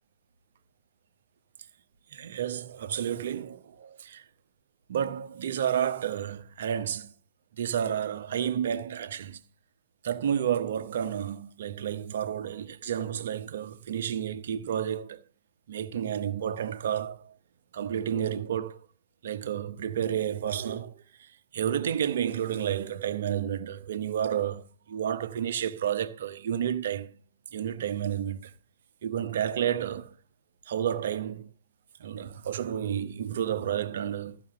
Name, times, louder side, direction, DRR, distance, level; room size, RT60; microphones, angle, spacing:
voice 1, 2.1-4.2 4.9-7.1 7.6-9.4 10.0-15.2 15.7-17.3 17.7-18.8 19.2-27.1 27.5-28.5 29.0-30.2 30.7-31.5 32.0-34.4, right 9 dB, 55° right, 1.1 m, -31 dB
14.5 x 6.1 x 6.8 m
figure-of-eight pair, 120°, 0 cm